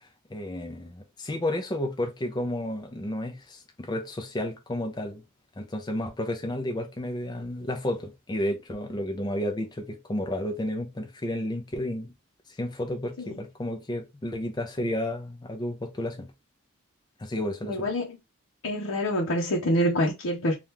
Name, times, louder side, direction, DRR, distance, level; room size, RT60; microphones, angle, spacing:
voice 1, 0.0-5.2 5.6-12.1 12.6-16.3 17.2-17.9, left 1 dB, 20° left, 0.5 m, -32 dB
voice 2, 17.6-18.2 18.6-20.5, equal, 80° left, 0.7 m, -26 dB
2.8 x 2.4 x 3.5 m
head